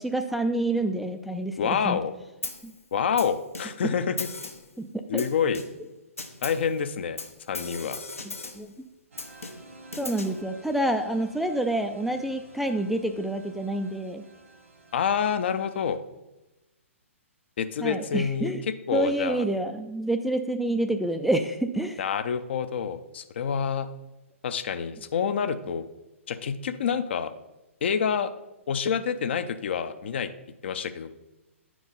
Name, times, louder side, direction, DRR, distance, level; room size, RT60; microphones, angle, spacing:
voice 1, 0.0-2.0 2.6-2.7 3.8-3.9 4.8-5.2 8.2-8.7 10.0-14.2 17.8-18.6 18.9-22.0, right 1 dB, ahead, 5 dB, 0.3 m, -28 dB
voice 2, 1.6-2.1 2.9-4.3 5.1-5.6 6.4-7.2 7.5-8.0 14.9-16.0 17.6-18.5 18.9-19.5 22.0-23.9 24.4-25.9 26.3-27.3 27.8-28.3 28.7-30.3 30.6-31.1, left 7 dB, 55° left, 10 dB, 0.5 m, -27 dB
Snare drum, 2.4-2.8 3.2-3.9 4.2-4.7 5.2-5.9 6.2-6.7 7.2-8.7 9.2-10.4, left 3 dB, 80° left, 0.9 m, -38 dB
sound 1, 9.1-16.0, right 2 dB, 70° right, 1.4 m, -51 dB
9.4 x 4.6 x 4.0 m, 1.0 s
figure-of-eight pair, 125°, 7 cm